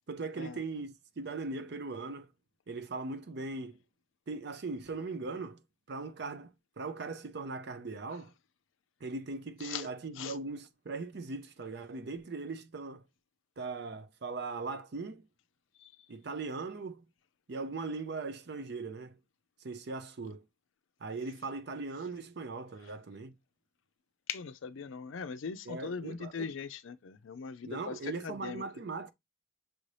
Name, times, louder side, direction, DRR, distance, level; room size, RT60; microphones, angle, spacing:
voice 1, 0.1-2.3 2.7-3.8 4.3-5.6 5.9-8.3 9.0-13.0 13.6-15.2 16.1-17.0 17.5-19.2 19.6-20.4 21.0-23.3 25.7-26.5 27.6-29.1, right 3 dB, 55° right, 0.5 m, -39 dB
voice 2, 24.3-28.6, left 6 dB, 70° left, 0.4 m, -40 dB
6.1 x 2.7 x 3.2 m
head